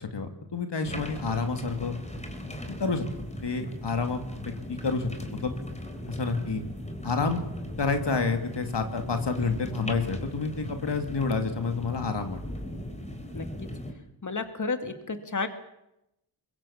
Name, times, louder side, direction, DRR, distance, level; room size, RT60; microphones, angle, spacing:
voice 1, 0.0-2.0 2.7-3.0 3.4-4.2 4.7-5.5 6.1-6.6 7.0-7.4 7.8-12.4, left 4 dB, 90° left, 6 dB, 2.6 m, -29 dB
sound 1, 0.8-13.9, left 1 dB, 15° left, 3.8 m, -38 dB
voice 2, 13.3-13.7 14.2-15.5, left 4 dB, 45° left, 8 dB, 2.2 m, -32 dB
24.0 x 23.0 x 7.2 m, 0.85 s
wide cardioid pair, 85°, 41 cm